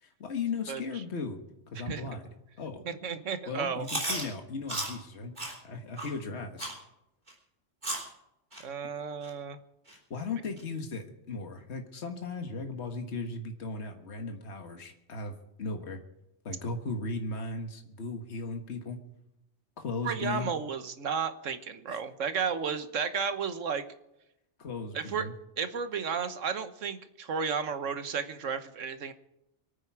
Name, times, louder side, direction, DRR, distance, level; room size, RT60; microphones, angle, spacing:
voice 1, 0.0-1.4 1.7-2.3 2.6-2.8 3.5-6.7 9.9-16.0 16.4-19.0 19.8-20.5 21.9-22.0 24.6-25.3, left 3 dB, 65° left, 4 dB, 1.8 m, -37 dB
voice 2, 2.8-3.8 8.6-9.6 20.0-23.8 24.9-25.3 25.6-29.1, right 6 dB, 85° right, 10 dB, 1.5 m, -33 dB
Chewing mastication, 3.8-4.2 4.7-4.9 5.4-5.5 6.0-6.1 6.6-6.8 7.3-7.4 7.8-8.1 8.5-8.6 9.2-9.3 9.9-10.0 10.6-10.7, right 1 dB, 40° right, 3.7 m, -34 dB
24.5 x 9.2 x 4.7 m, 0.86 s
omnidirectional pair, 1.3 m